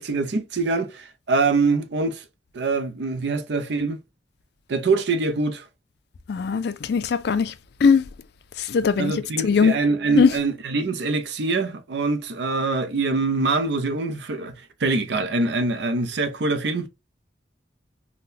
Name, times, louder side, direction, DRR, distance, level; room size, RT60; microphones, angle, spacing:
voice 1, 0.0-2.2 2.5-4.0 4.7-5.7 9.0-16.9, right 3 dB, 65° right, 0.5 m, -24 dB
voice 2, 6.3-7.5 7.8-8.1 8.6-9.7 10.2-10.3, left 5 dB, 60° left, 0.3 m, -20 dB
3.6 x 2.1 x 2.6 m
head